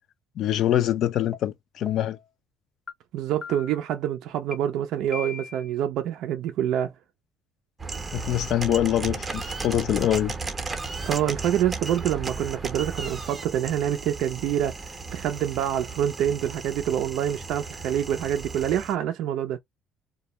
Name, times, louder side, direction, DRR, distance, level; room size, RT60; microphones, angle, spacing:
voice 1, 0.4-2.2 8.1-10.3, left 12 dB, 65° left, 0.5 m, -24 dB
sound 1, 1.3-1.4 1.9-2.2 2.9-3.0 3.4-3.9 4.5-4.6 5.1-5.7, left 5 dB, 25° left, 0.6 m, -39 dB
voice 2, 3.1-6.9 11.1-19.6, right 10 dB, 75° right, 0.4 m, -26 dB
sound 2, 7.8-18.9, right 4 dB, 20° right, 0.6 m, -35 dB
2.2 x 2.0 x 2.9 m
cardioid pair, 100°, 0 cm